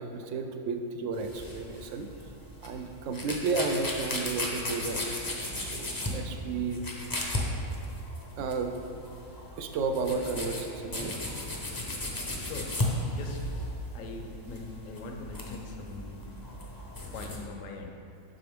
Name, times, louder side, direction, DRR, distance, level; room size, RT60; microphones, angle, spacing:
voice 1, 0.0-2.1 2.6-6.8 8.4-8.7 9.6-11.1, right 4 dB, 70° right, 6 dB, 0.8 m, -33 dB
sound 1, 1.1-17.4, left 1 dB, 25° left, 0.5 m, -36 dB
voice 2, 12.3-12.7 13.1-13.4 13.9-16.2 17.1-17.9, left 3 dB, 70° left, 3 dB, 1.1 m, -42 dB
7.5 x 5.7 x 3.6 m, 2.6 s
omnidirectional pair, 1.5 m